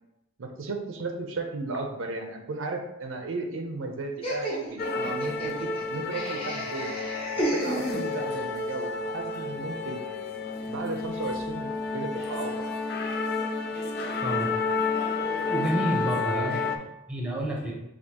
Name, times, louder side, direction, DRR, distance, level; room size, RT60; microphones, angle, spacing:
voice 1, 0.4-6.9 7.4-10.0 10.7-12.8 15.9-16.5, right 3 dB, 70° right, 4 dB, 0.6 m, -35 dB
Laughter, 4.2-8.5, right 1 dB, 30° left, 1.1 m, -33 dB
sound 1, 4.8-16.8, left 4 dB, 50° left, 0.4 m, -31 dB
voice 2, 14.2-14.6 15.5-16.8 17.1-17.7, right 1 dB, 5° right, -2 dB, 0.8 m, -29 dB
6.5 x 2.5 x 2.9 m, 0.88 s
head